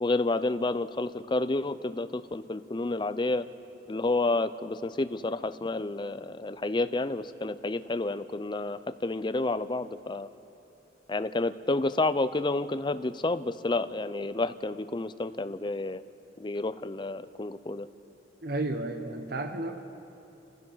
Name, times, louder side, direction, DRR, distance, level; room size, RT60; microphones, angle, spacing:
voice 1, 0.0-3.4 3.9-10.3 11.1-16.0 16.4-17.9, left 2 dB, 25° left, 12 dB, 0.5 m, -30 dB
voice 2, 18.4-19.8, right 2 dB, 60° right, 7 dB, 1.0 m, -32 dB
29.5 x 15.5 x 5.7 m, 2.8 s
head